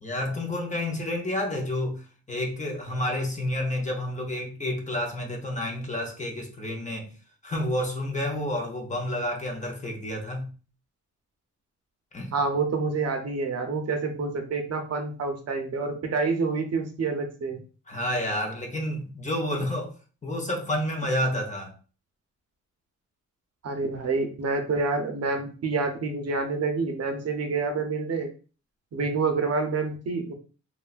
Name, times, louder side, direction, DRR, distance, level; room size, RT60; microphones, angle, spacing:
voice 1, 0.0-7.1 7.4-10.5 12.1-12.3 17.9-19.9 20.2-21.7, left 1 dB, 25° left, 0.6 m, -30 dB
voice 2, 12.3-17.6 23.6-28.3 28.9-30.3, right 4 dB, 55° right, 0.6 m, -28 dB
3.0 x 2.3 x 2.4 m
cardioid pair, 110°, 31 cm